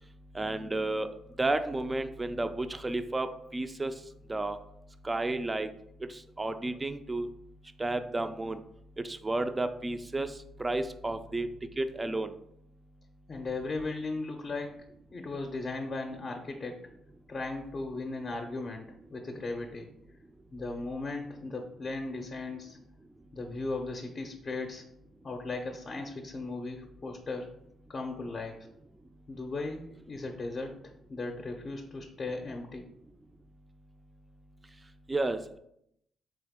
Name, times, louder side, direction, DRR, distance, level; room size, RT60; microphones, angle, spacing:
voice 1, 0.3-4.6 5.0-5.7 6.0-7.3 7.8-8.6 9.0-12.3 34.8-35.6, right 2 dB, 20° right, 9 dB, 0.3 m, -32 dB
voice 2, 13.3-14.7 15.1-16.8 17.3-19.9 20.5-22.8 23.3-24.8 25.2-27.5 27.9-28.7 29.3-32.8, left 3 dB, 40° left, 2 dB, 0.6 m, -37 dB
3.8 x 3.4 x 3.6 m, 0.76 s
cardioid pair, 90°, 0 cm